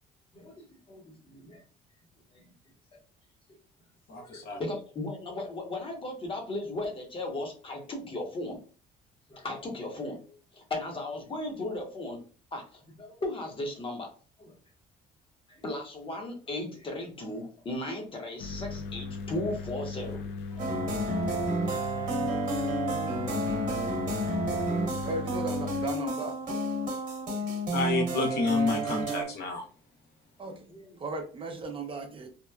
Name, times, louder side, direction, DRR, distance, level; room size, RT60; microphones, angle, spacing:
voice 1, 0.3-1.6 2.3-2.5 3.5-3.6 4.2-8.6 9.3-12.2 12.5-14.5 15.5-20.2 20.5-20.7 21.0-21.3 22.6-23.0 23.4-23.5 23.8-24.6 25.0-25.1 27.3-27.4 30.7-31.0, left 2 dB, 30° left, 2 dB, 0.9 m, -37 dB
voice 2, 4.1-4.6 27.7-29.6, left 3 dB, 75° left, 2 dB, 0.9 m, -29 dB
sound 1, 18.4-25.9, left 4 dB, 90° left, 0.5 m, -37 dB
sound 2, 20.6-29.2, right 1 dB, 50° right, 1.0 m, -31 dB
voice 3, 25.0-26.4 30.4-30.7 31.0-32.3, right 3 dB, 30° right, 4 dB, 0.5 m, -36 dB
2.8 x 2.1 x 2.3 m, 0.38 s
cardioid pair, 110°, 17 cm